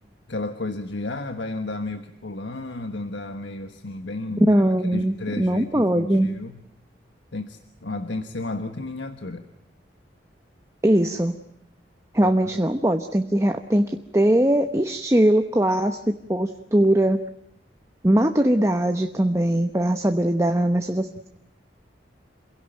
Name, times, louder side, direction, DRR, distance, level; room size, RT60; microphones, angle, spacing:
voice 1, 0.3-6.6 7.3-9.5 12.2-12.4, left 2 dB, 75° left, 7 dB, 1.4 m, -33 dB
voice 2, 4.5-6.3 10.8-11.4 12.1-17.2 18.0-21.3, right 1 dB, 15° right, 6 dB, 0.9 m, -21 dB
27.5 x 17.0 x 9.1 m, 0.79 s
head